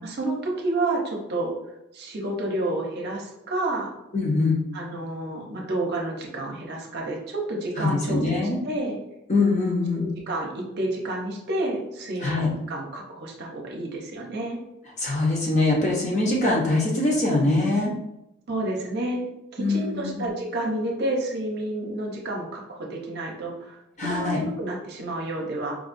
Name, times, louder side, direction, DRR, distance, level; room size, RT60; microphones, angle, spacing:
voice 1, 0.0-1.5 1.9-3.9 4.7-9.0 9.9-14.6 18.5-19.2 19.5-25.7, right 2 dB, 50° right, -1 dB, 0.7 m, -30 dB
voice 2, 4.1-4.6 7.8-8.6 9.3-10.1 12.2-12.5 15.0-17.9 19.6-20.2 24.0-24.4, left 2 dB, 35° left, -2 dB, 0.7 m, -23 dB
4.8 x 2.3 x 2.5 m, 0.88 s
head